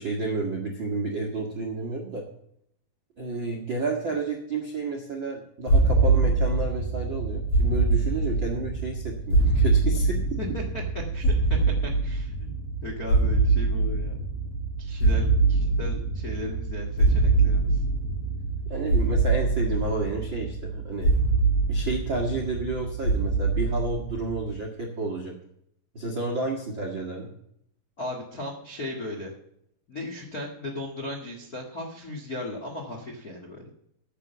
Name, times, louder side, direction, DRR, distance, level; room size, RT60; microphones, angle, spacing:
voice 1, 0.0-2.2 3.2-10.2 18.7-21.1 21.7-25.3 25.9-27.3, right 3 dB, 55° right, 1 dB, 1.3 m, -31 dB
sound 1, 5.7-24.6, right 3 dB, 30° left, 6.3 m, -24 dB
voice 2, 10.4-14.3 14.8-17.8 28.0-29.3 29.9-33.7, left 2 dB, 50° left, 0 dB, 1.1 m, -37 dB
14.5 x 6.9 x 7.0 m, 0.72 s
omnidirectional pair, 5.0 m